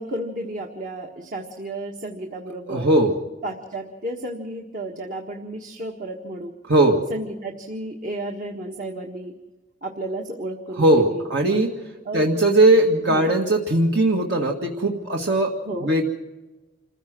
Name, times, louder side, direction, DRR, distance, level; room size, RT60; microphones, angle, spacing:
voice 1, 0.0-2.9 3.4-6.5 7.1-9.4 9.8-11.2 12.0-12.3 13.1-13.3 15.6-15.9, right 1 dB, 45° right, 1 dB, 1.6 m, -32 dB
voice 2, 2.7-3.1 6.7-7.0 10.8-11.7 12.1-15.5 15.8-16.0, right 1 dB, 65° right, 1 dB, 1.9 m, -19 dB
27.0 x 15.5 x 6.2 m, 1.2 s
head